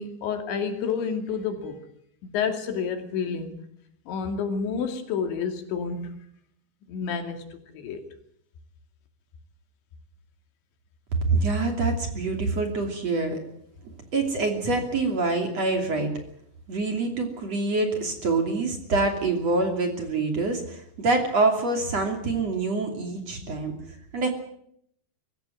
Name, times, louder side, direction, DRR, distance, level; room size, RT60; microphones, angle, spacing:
voice 1, 0.0-1.8 2.2-3.5 4.1-6.1 6.9-8.0, left 6 dB, 85° left, 5 dB, 4.8 m, -29 dB
voice 2, 11.3-13.4 13.8-16.1 16.7-23.8 24.1-24.3, right 3 dB, 40° right, 4 dB, 3.4 m, -26 dB
23.0 x 16.0 x 9.2 m, 0.71 s
omnidirectional pair, 5.1 m